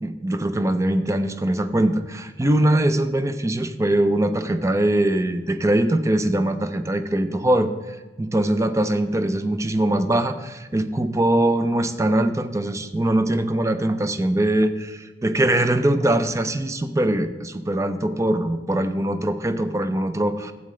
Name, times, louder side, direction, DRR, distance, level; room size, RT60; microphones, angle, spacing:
voice 1, 0.0-20.5, right 1 dB, 15° right, 10 dB, 0.5 m, -22 dB
12.0 x 8.4 x 3.2 m, 1.3 s
head